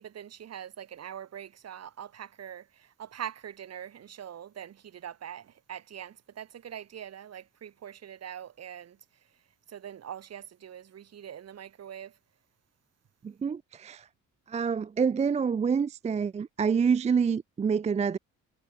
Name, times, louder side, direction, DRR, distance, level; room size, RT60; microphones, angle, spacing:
voice 1, 0.0-9.0 9.7-12.2, right 9 dB, 55° right, 2.1 m, -43 dB
voice 2, 13.2-14.0 14.5-18.2, right 6 dB, 25° right, 0.4 m, -27 dB
cardioid pair, 90°, 30 cm